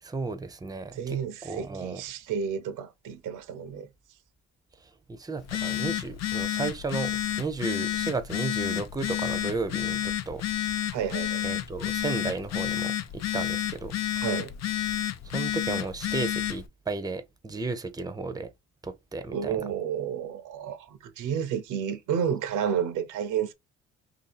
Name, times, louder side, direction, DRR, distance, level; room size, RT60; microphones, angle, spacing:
voice 1, 0.0-2.0 4.8-10.4 11.4-13.9 15.3-18.5 18.8-19.6, right 3 dB, 15° right, 0.6 m, -34 dB
voice 2, 0.9-3.9 10.9-11.4 14.2-14.5 19.3-23.5, right 8 dB, 85° right, 0.8 m, -31 dB
Telephone, 5.4-16.7, left 12 dB, 60° left, 0.6 m, -30 dB
2.8 x 2.7 x 4.1 m
cardioid pair, 90°, 30 cm